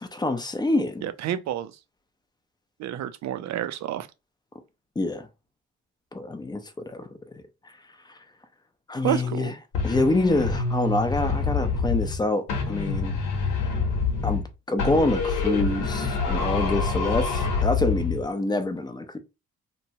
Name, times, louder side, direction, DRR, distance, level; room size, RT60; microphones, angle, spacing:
voice 1, 0.0-1.0 5.0-5.3 6.1-7.1 7.3-7.4 8.9-9.5 9.8-13.1 14.2-14.4 14.7-19.2, left 2 dB, 15° left, 0.5 m, -26 dB
voice 2, 1.0-1.7 2.8-4.1 9.0-9.6, right 11 dB, 65° right, 0.5 m, -29 dB
sound 1, 9.7-12.2 12.5-14.5 14.8-18.2, left 4 dB, 90° left, 0.9 m, -26 dB
2.9 x 2.2 x 2.7 m
cardioid pair, 90°, 30 cm